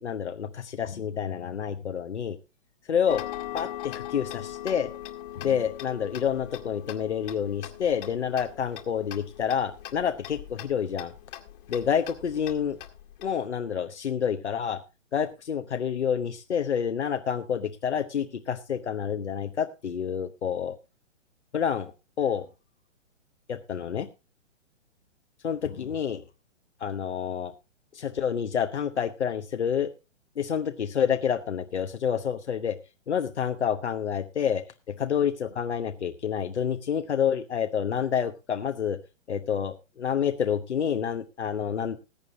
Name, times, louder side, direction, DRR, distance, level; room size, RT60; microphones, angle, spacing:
voice 1, 0.0-2.4 2.9-3.2 3.5-4.9 5.3-11.1 11.7-12.8 13.2-14.8 15.1-20.7 21.5-21.9 22.2-22.5 23.5-24.1 25.4-26.2 26.8-27.5 27.9-29.9 30.4-32.8 33.1-39.0 39.3-42.0, left 8 dB, 65° left, 7 dB, 1.1 m, -28 dB
Tick-tock, 3.1-13.3, left 13 dB, 45° left, 2.0 m, -41 dB
20.0 x 9.1 x 2.7 m, 0.29 s
figure-of-eight pair, 125°, 36 cm